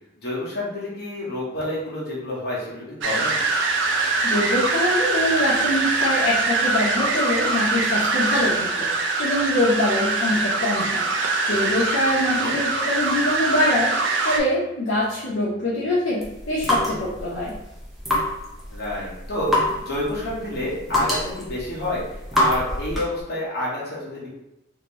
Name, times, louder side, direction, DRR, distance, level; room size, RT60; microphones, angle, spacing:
voice 1, 0.2-3.4 12.4-12.6 18.7-22.0 22.3-24.3, left 1 dB, 50° left, -6 dB, 1.1 m, -29 dB
sound 1, 3.0-14.4, right 3 dB, 60° right, 0.5 m, -23 dB
voice 2, 4.2-8.9 9.2-11.0 11.5-13.9 14.2-17.5, left 1 dB, 70° left, -8 dB, 0.7 m, -24 dB
sound 2, 16.2-23.2, left 1 dB, ahead, 0.5 m, -26 dB
2.8 x 2.6 x 3.0 m, 0.89 s
head